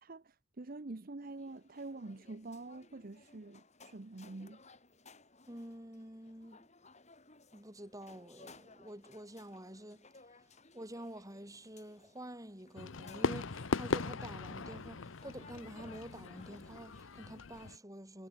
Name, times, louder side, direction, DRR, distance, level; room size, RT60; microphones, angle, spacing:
voice 1, 0.0-4.6, right 2 dB, 45° right, 0.8 m, -46 dB
sound 1, 1.2-17.8, left 3 dB, 35° left, 5.7 m, -61 dB
voice 2, 5.5-6.7 7.5-10.1 10.7-18.3, right 1 dB, 15° right, 6.4 m, -48 dB
Fireworks, 12.8-17.8, left 4 dB, 75° left, 0.9 m, -39 dB
head